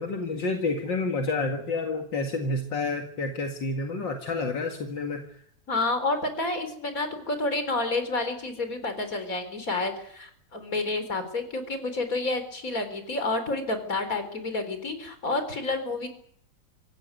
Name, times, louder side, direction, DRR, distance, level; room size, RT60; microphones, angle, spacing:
voice 1, 0.0-5.2, left 3 dB, 70° left, 3 dB, 2.7 m, -29 dB
voice 2, 5.7-16.1, left 2 dB, 45° left, 9 dB, 4.3 m, -29 dB
25.5 x 16.0 x 9.3 m, 0.65 s
omnidirectional pair, 2.0 m